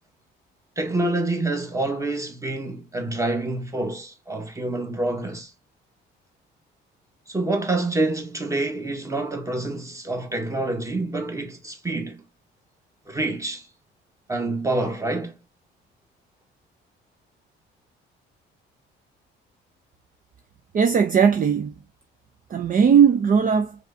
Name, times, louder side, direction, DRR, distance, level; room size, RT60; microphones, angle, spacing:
voice 1, 0.8-5.5 7.3-12.2 13.1-13.7 14.3-15.3, right 2 dB, 15° right, 1.5 m, -27 dB
voice 2, 20.7-21.7 22.5-23.8, right 7 dB, 40° right, 0.6 m, -18 dB
4.8 x 3.5 x 2.7 m
cardioid pair, 85°, 21 cm